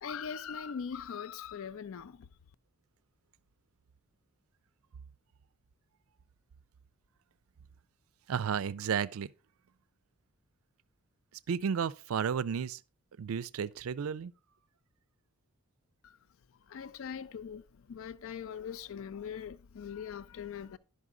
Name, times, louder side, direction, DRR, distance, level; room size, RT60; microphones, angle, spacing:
voice 1, 0.0-2.3 16.0-16.2 16.7-20.8, left 7 dB, 65° left, 0.4 m, -41 dB
voice 2, 8.3-9.3 11.5-12.8 13.2-14.3, right 7 dB, 70° right, 0.4 m, -32 dB
11.0 x 5.4 x 3.8 m
head